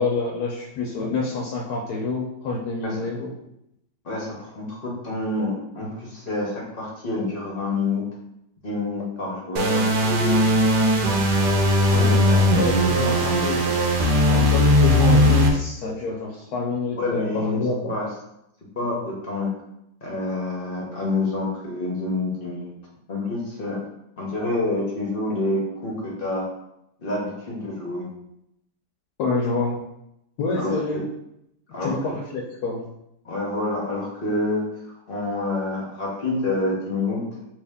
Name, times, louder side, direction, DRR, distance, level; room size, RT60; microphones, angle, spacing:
voice 1, 0.0-3.3 12.5-13.8 14.3-17.9 29.2-29.8 30.4-31.1 31.7-32.8, left 3 dB, 75° left, -1 dB, 1.0 m, -27 dB
voice 2, 4.0-8.0 8.6-10.5 11.4-13.7 16.9-17.6 17.9-18.1 18.8-19.5 20.0-22.7 23.1-23.8 24.2-26.4 27.0-28.0 30.5-31.0 31.7-31.9 33.2-37.2, left 2 dB, 45° left, -4 dB, 0.8 m, -28 dB
sound 1, 9.6-15.5, left 1 dB, 80° right, 1.2 m, -18 dB
3.1 x 2.7 x 3.4 m, 0.81 s
omnidirectional pair, 1.8 m